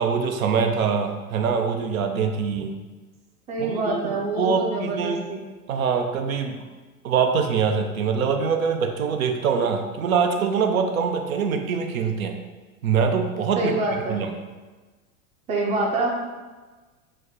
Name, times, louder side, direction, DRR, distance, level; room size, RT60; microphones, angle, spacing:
voice 1, 0.0-2.8 3.6-5.2 5.7-6.6 7.0-12.4 12.8-13.7 14.1-14.3, right 6 dB, 70° right, 5 dB, 0.5 m, -24 dB
voice 2, 3.5-5.4 13.6-14.2 15.5-16.1, right 2 dB, 15° right, -1 dB, 0.5 m, -26 dB
4.2 x 2.1 x 4.1 m, 1.3 s
figure-of-eight pair, 85°, 44 cm